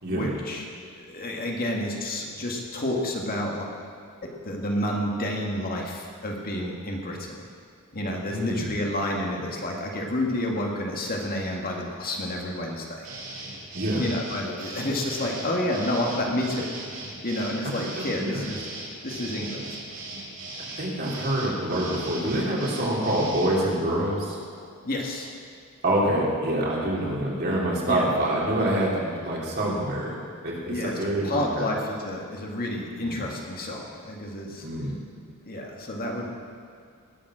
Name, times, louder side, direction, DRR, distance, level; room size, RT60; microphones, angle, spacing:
voice 1, 0.0-0.6 1.0-3.7 4.2-7.4 7.9-13.1 14.0-16.7 17.2-18.7 19.0-19.8 24.8-25.3 27.9-28.1 30.7-34.7 35.4-36.4, left 1 dB, 45° left, 0 dB, 1.8 m, -30 dB
voice 2, 8.3-8.7 13.7-14.0 17.9-18.4 20.8-24.4 25.8-30.2 30.4-31.7 33.0-33.2 34.6-35.0, right 1 dB, 50° right, -4 dB, 3.1 m, -26 dB
sound 1, 13.0-23.6, right 2 dB, 70° right, 4.3 m, -38 dB
19.0 x 7.3 x 6.3 m, 2.3 s
head